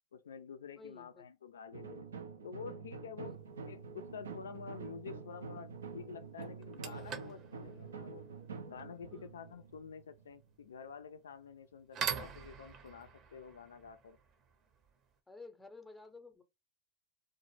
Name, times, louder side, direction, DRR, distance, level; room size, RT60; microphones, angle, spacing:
voice 1, 0.1-2.1 2.4-8.3 8.7-14.2, left 6 dB, 85° left, 0.3 m, -49 dB
voice 2, 0.8-1.2 3.2-3.4 9.1-9.3 15.3-16.4, left 3 dB, 5° left, 0.6 m, -53 dB
sound 1, 1.7-10.5, right 5 dB, 90° right, 0.4 m, -47 dB
sound 2, 3.5-3.7 5.8-5.9 6.4-15.1, right 7 dB, 40° right, 0.6 m, -45 dB
2.0 x 2.0 x 3.1 m
hypercardioid pair, 95°, 0 cm